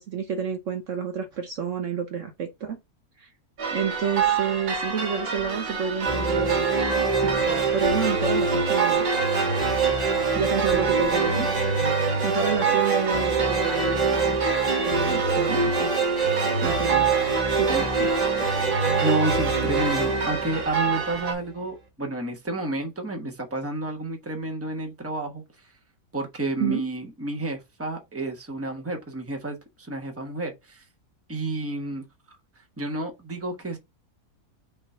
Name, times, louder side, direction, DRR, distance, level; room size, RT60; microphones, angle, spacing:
voice 1, 0.0-2.8 3.2-3.3 3.7-6.7 7.2-9.1 10.4-14.4 14.8-15.9 16.6-17.1 17.6-18.1 26.6-26.8, right 6 dB, 60° right, 1.0 m, -29 dB
sound 1, 3.6-21.3, right 5 dB, 85° right, 2.0 m, -29 dB
sound 2, 6.0-21.3, right 4 dB, 30° right, 1.2 m, -25 dB
voice 2, 19.0-25.4 26.1-30.8 31.3-32.0 32.8-33.8, right 2 dB, 10° right, 1.1 m, -30 dB
5.6 x 3.0 x 5.5 m
omnidirectional pair, 1.7 m